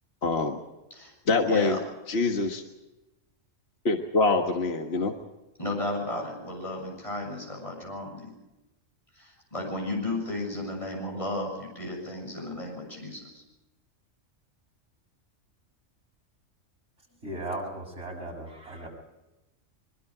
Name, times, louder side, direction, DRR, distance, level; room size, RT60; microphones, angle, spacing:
voice 1, 0.2-0.6 1.3-1.8 2.1-2.6 3.9-5.1, left 3 dB, 55° left, 4 dB, 1.8 m, -25 dB
voice 2, 0.9-1.8 5.6-8.3 9.1-13.4, left 1 dB, 25° left, 0 dB, 7.2 m, -34 dB
voice 3, 17.2-18.9, right 1 dB, 60° right, -1 dB, 7.0 m, -36 dB
23.5 x 23.0 x 5.0 m, 1.0 s
omnidirectional pair, 1.3 m